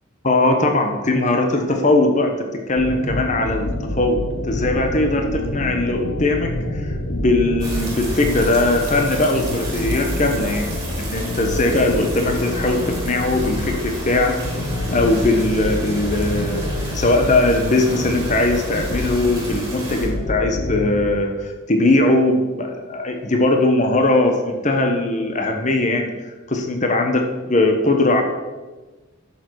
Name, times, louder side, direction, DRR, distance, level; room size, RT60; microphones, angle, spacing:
voice 1, 0.2-2.4 2.7-3.7 4.0-4.2 4.5-10.7 11.0-14.3 14.9-16.7 16.9-26.1 26.5-28.2, left 2 dB, 35° left, 4 dB, 1.1 m, -20 dB
sound 1, 2.8-21.2, left 1 dB, 90° left, 1.1 m, -27 dB
sound 2, 7.6-20.1, right 1 dB, 20° right, 2.7 m, -32 dB
10.5 x 7.0 x 4.7 m, 1.2 s
head